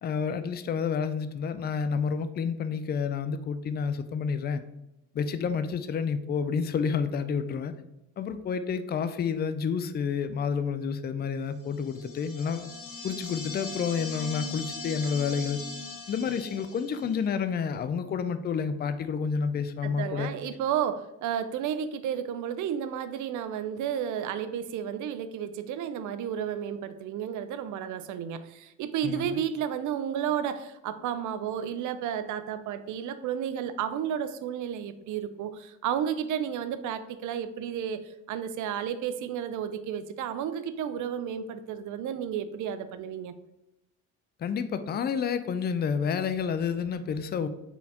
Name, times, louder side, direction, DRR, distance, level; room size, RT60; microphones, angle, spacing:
voice 1, 0.0-4.6 5.1-7.7 8.2-12.7 13.0-15.6 16.1-20.3 29.0-29.4 44.4-47.5, left 6 dB, 35° left, 11 dB, 0.4 m, -29 dB
sound 1, 11.8-17.2, left 3 dB, 90° left, 1.0 m, -40 dB
voice 2, 19.8-43.4, right 9 dB, 80° right, 12 dB, 0.5 m, -32 dB
4.1 x 3.7 x 2.8 m, 0.91 s
cardioid pair, 90°, 30 cm